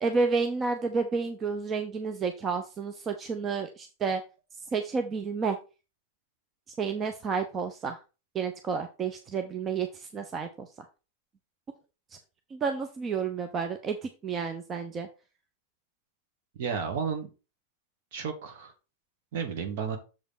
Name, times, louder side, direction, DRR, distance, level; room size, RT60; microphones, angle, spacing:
voice 1, 0.0-4.2 4.7-5.6 6.8-8.0 8.3-10.7 12.5-15.1, right 5 dB, 25° right, 7 dB, 0.8 m, -30 dB
voice 2, 16.6-17.3 18.1-18.7 19.3-20.0, right 6 dB, 50° right, 5 dB, 2.1 m, -32 dB
7.3 x 5.2 x 4.2 m, 0.30 s
figure-of-eight pair, 90°, 0 cm